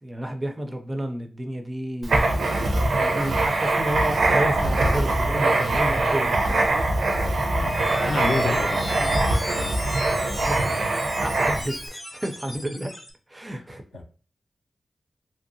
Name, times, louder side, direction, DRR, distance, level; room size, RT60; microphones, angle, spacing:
voice 1, 0.0-2.3 3.0-6.8 10.5-13.0 13.3-13.8, right 1 dB, 20° right, 0.4 m, -31 dB
Writing, 2.0-11.8, right 2 dB, 80° right, 0.5 m, -23 dB
sound 1, 7.2-13.1, equal, 15° left, 0.7 m, -36 dB
voice 2, 7.5-10.1 10.4-10.6 13.5-13.6 13.9-14.0, left 3 dB, 75° left, 0.4 m, -31 dB
2.8 x 2.6 x 2.6 m
wide cardioid pair, 145°, 0 cm